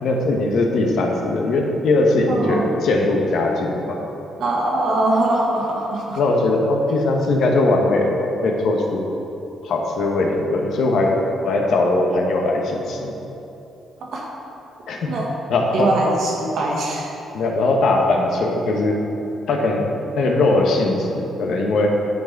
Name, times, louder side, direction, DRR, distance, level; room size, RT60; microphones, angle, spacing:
voice 1, 0.0-4.0 6.1-9.0 9.6-11.2 11.4-13.1 14.9-15.2 15.5-16.0 17.3-19.0 19.5-19.9 20.1-21.9, left 2 dB, 70° left, 1 dB, 1.1 m, -20 dB
voice 2, 2.3-2.7 4.4-6.2 14.1-14.2 15.1-15.3 15.7-17.1, right 2 dB, 70° right, -2 dB, 1.7 m, -22 dB
9.4 x 5.2 x 4.7 m, 2.9 s
cardioid pair, 90°, 0 cm